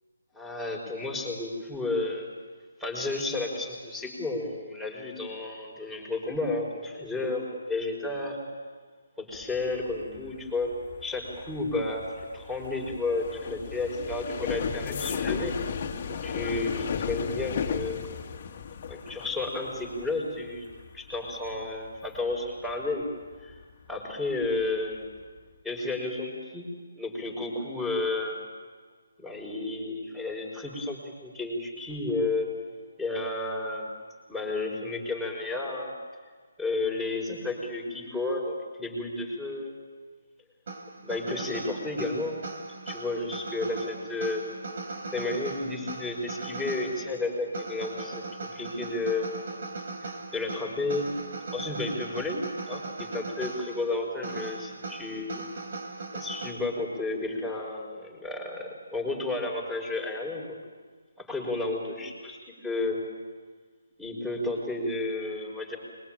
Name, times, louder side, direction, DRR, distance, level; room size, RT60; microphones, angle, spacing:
voice 1, 0.3-2.3 2.8-8.4 9.2-10.7 11.0-12.0 12.3-15.5 16.1-18.0 18.9-20.6 20.9-23.1 23.4-23.5 23.9-25.1 25.6-26.6 27.0-28.4 29.2-32.5 33.0-33.9 34.3-35.9 36.6-39.7 41.0-42.4 42.9-44.4 45.1-48.2 48.5-49.3 50.3-51.1 51.5-52.4 52.7-55.4 56.1-60.6 61.2-63.0 64.0-65.8, left 2 dB, ahead, -1 dB, 5.5 m, -32 dB
sound 1, 9.3-24.0 24.3-24.7 25.0-25.4, left 6 dB, 40° left, 2.2 m, -36 dB
sound 2, 40.7-56.5, right 3 dB, 55° right, 4.2 m, -39 dB
26.5 x 22.5 x 9.1 m, 1.5 s
figure-of-eight pair, 150°, 0 cm